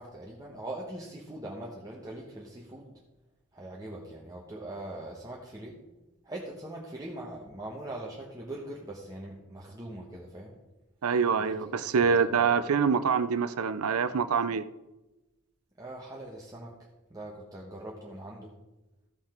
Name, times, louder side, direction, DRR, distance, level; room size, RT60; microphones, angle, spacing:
voice 1, 0.0-2.9 3.5-5.8 6.2-10.6 11.4-12.5 15.8-18.5, right 1 dB, 15° right, -3 dB, 1.1 m, -42 dB
voice 2, 11.0-14.7, right 6 dB, 85° right, 13 dB, 0.5 m, -25 dB
15.0 x 5.8 x 4.4 m, 1.0 s
head